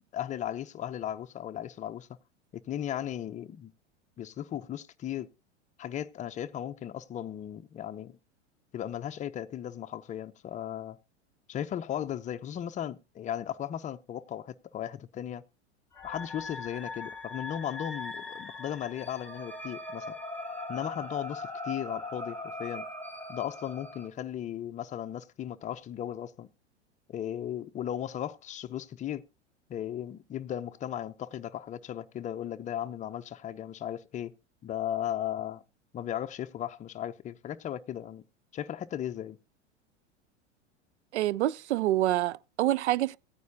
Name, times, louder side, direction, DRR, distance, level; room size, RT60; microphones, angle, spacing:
voice 1, 0.1-2.1 2.7-3.7 4.2-5.3 5.8-8.2 8.7-11.0 11.5-15.4 16.0-20.2 20.7-22.8 23.3-26.5 27.1-29.2 29.7-34.3 34.6-35.6 35.9-38.2 38.5-39.4, left 10 dB, 20° left, 0.6 m, -36 dB
sound 1, 15.9-24.1, left 2 dB, 5° left, 1.9 m, -40 dB
voice 2, 41.1-43.2, right 14 dB, 70° right, 0.5 m, -27 dB
16.5 x 9.3 x 2.7 m
figure-of-eight pair, 90°, 35 cm